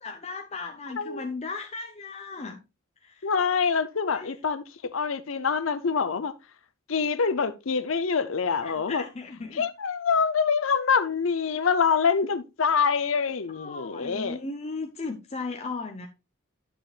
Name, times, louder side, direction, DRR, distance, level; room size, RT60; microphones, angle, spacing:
voice 1, 0.0-2.6 3.0-3.3 4.0-4.3 8.6-9.7 13.5-16.1, left 3 dB, 30° left, 0.7 m, -36 dB
voice 2, 3.2-6.3 6.9-9.0 9.5-14.4, left 5 dB, 70° left, 0.7 m, -25 dB
11.5 x 6.9 x 2.4 m
head